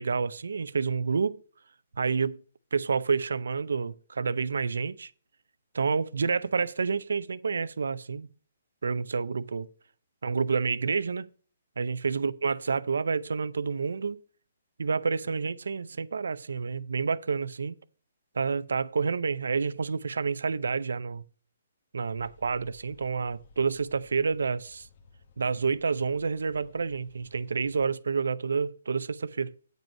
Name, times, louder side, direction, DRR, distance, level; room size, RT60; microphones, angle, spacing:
voice 1, 0.0-1.4 2.0-2.4 2.7-5.1 5.7-8.3 8.8-9.7 10.2-11.3 11.8-14.2 14.8-17.7 18.3-21.2 21.9-24.9 25.4-29.5, right 5 dB, 85° right, 0.5 m, -29 dB
sound 1, 22.1-27.9, left 4 dB, 45° left, 1.2 m, -57 dB
9.0 x 5.4 x 5.4 m
hypercardioid pair, 165°, 0 cm